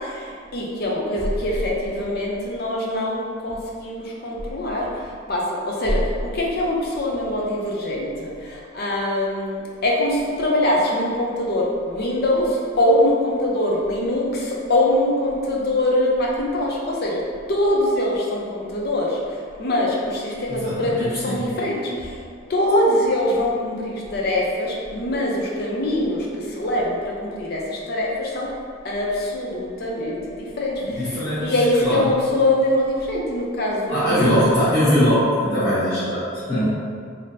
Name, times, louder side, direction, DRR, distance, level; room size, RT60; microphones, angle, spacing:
voice 1, 0.0-17.2 17.5-19.2 19.6-22.2 22.5-28.5 28.8-34.3, left 1 dB, 50° left, -3 dB, 0.5 m, -23 dB
voice 2, 20.5-21.5 30.9-32.1 33.9-36.7, equal, 30° left, -19 dB, 1.3 m, -21 dB
3.4 x 2.7 x 2.6 m, 2.2 s
head